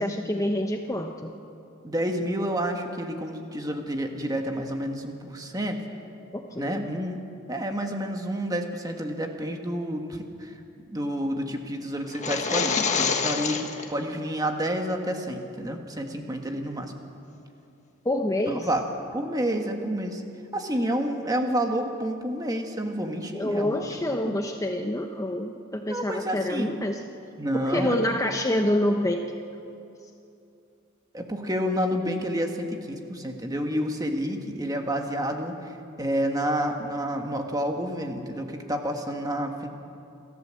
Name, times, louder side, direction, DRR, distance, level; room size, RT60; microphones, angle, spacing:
voice 1, 0.0-1.3 6.3-6.9 18.0-18.7 23.3-27.0 27.5-29.2, left 1 dB, 15° left, 4 dB, 0.8 m, -27 dB
voice 2, 1.8-5.8 6.6-7.2 7.5-10.5 10.9-16.9 18.5-18.8 19.1-20.2 20.5-23.9 24.2-24.3 25.9-26.7 27.4-28.0 31.1-35.5 36.0-39.7, equal, 20° right, 3 dB, 1.7 m, -29 dB
sound 1, 12.1-13.9, left 5 dB, 35° left, 1.4 m, -26 dB
28.0 x 14.0 x 7.7 m, 2.7 s
head